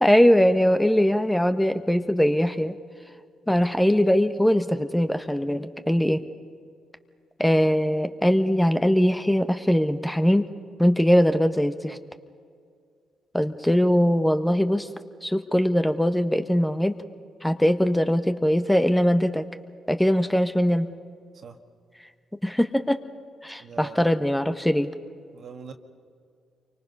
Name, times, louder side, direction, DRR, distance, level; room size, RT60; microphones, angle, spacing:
voice 1, 0.0-2.7 3.5-6.2 7.4-10.5 10.8-12.0 13.3-14.9 15.2-16.9 17.4-19.4 19.9-20.9 22.4-23.0 23.4-24.9, equal, 5° left, 9 dB, 1.3 m, -21 dB
voice 2, 23.6-24.1 25.3-25.7, right 6 dB, 55° right, 6 dB, 1.7 m, -42 dB
29.0 x 24.5 x 5.5 m, 2.2 s
hypercardioid pair, 40°, 0 cm